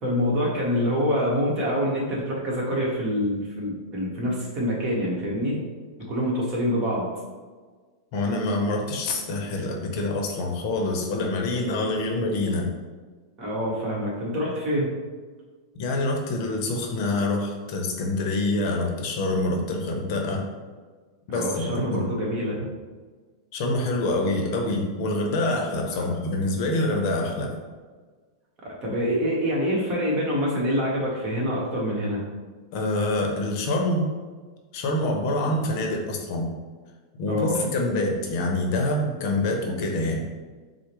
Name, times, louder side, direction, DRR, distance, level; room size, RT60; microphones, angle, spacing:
voice 1, 0.0-5.6 6.1-7.1 13.4-14.9 21.3-22.7 25.9-26.1 28.6-32.2 37.3-37.6, equal, 35° right, -4 dB, 1.2 m, -26 dB
voice 2, 8.1-12.7 15.8-20.4 21.3-22.1 23.5-27.5 32.7-34.2 34.7-36.5 37.2-40.2, left 2 dB, 55° left, 1 dB, 0.7 m, -26 dB
4.5 x 2.1 x 3.1 m, 1.4 s
hypercardioid pair, 125°, 2 cm